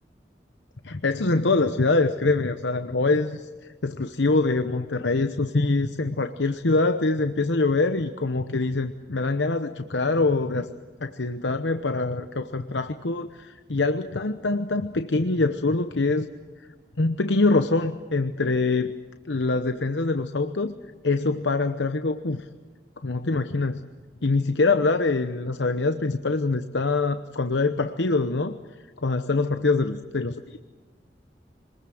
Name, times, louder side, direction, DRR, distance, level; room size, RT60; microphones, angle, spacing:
voice 1, 0.8-3.5 3.8-10.7 11.0-16.3 16.6-16.7 17.0-18.9 19.3-20.7 21.0-22.5 23.0-23.8 24.2-28.6 29.0-30.6, left 3 dB, 90° left, 8 dB, 0.9 m, -24 dB
25.5 x 20.5 x 7.8 m, 1.3 s
head